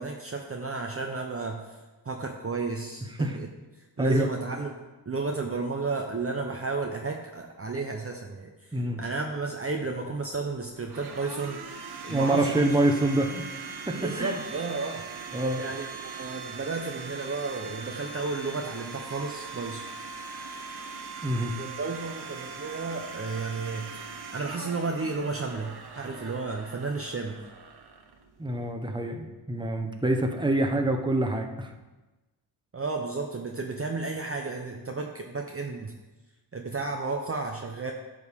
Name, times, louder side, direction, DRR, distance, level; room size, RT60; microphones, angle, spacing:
voice 1, 0.0-1.8 2.0-3.5 3.7-11.6 12.0-12.7 13.9-15.0 15.6-19.8 21.6-24.0 24.3-27.4 32.7-35.9 36.5-37.9, right 3 dB, 30° right, 2 dB, 0.9 m, -33 dB
voice 2, 4.0-4.3 8.7-9.0 12.1-14.4 15.3-15.6 21.2-21.5 28.4-31.7, right 1 dB, 10° right, 4 dB, 1.1 m, -26 dB
Domestic sounds home sounds, 9.9-28.7, right 4 dB, 50° right, 1.2 m, -41 dB
11.0 x 6.3 x 3.7 m, 1.1 s
cardioid pair, 60°, 48 cm